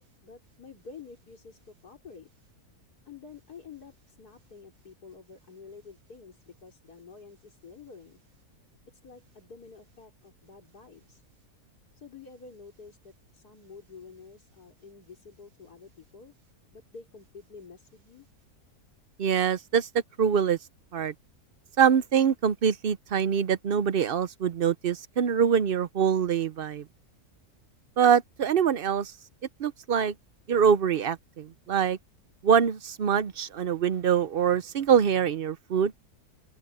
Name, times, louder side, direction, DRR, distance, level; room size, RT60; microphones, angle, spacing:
voice 1, 0.0-2.3 3.0-8.2 8.9-11.2 11.9-16.3 16.7-18.3, left 5 dB, 85° left, 4.7 m, -49 dB
voice 2, 19.2-19.9 20.2-20.6 20.9-21.1 21.8-26.8 28.0-29.1 29.6-30.1 30.5-32.0 32.4-35.9, right 7 dB, 55° right, 0.6 m, -24 dB
open air
omnidirectional pair, 1.6 m